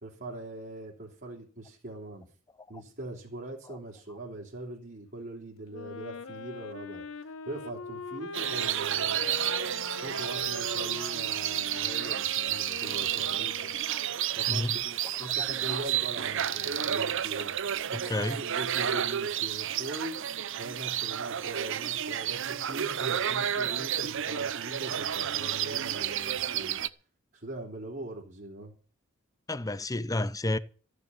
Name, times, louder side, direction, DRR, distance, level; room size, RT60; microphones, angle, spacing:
voice 1, 0.0-2.3 2.7-9.2 9.9-13.7 14.4-17.6 18.2-20.2 20.6-26.8 27.3-28.7, right 2 dB, 45° right, 3.6 m, -41 dB
Wind instrument woodwind instrument, 5.7-14.1, left 4 dB, 80° left, 1.2 m, -42 dB
sound 1, 8.3-26.9, right 10 dB, 65° right, 0.7 m, -31 dB
voice 2, 17.9-18.4 29.5-30.6, left 1 dB, 15° left, 0.7 m, -30 dB
15.0 x 6.9 x 9.7 m
head